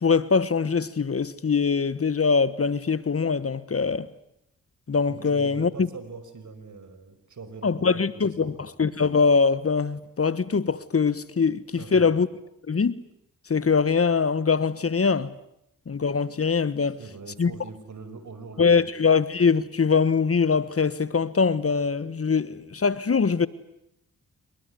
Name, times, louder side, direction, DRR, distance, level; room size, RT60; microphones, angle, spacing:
voice 1, 0.0-4.1 4.9-5.9 7.6-12.3 12.7-13.0 13.5-15.3 15.9-17.0 17.4-17.5 18.6-23.5, left 5 dB, 40° left, 1.3 m, -23 dB
voice 2, 5.1-8.7 11.8-12.2 17.0-18.9, right 4 dB, 60° right, 5.3 m, -42 dB
26.5 x 22.0 x 9.5 m
supercardioid pair, 50°, 34 cm